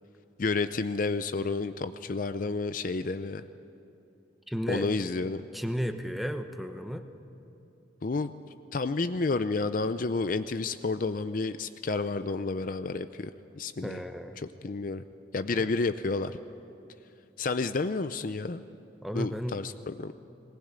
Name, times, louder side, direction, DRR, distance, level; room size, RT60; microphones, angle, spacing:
voice 1, 0.4-3.4 4.7-5.4 8.0-8.3 8.7-13.3 13.6-14.0 14.4-15.0 15.3-16.3 17.4-18.6 19.1-20.1, left 3 dB, 45° left, 11 dB, 0.5 m, -30 dB
voice 2, 4.5-4.9 5.5-7.0 13.8-14.4 15.6-15.7 19.0-19.6, equal, ahead, 7 dB, 0.9 m, -33 dB
19.5 x 19.5 x 8.9 m, 2.7 s
head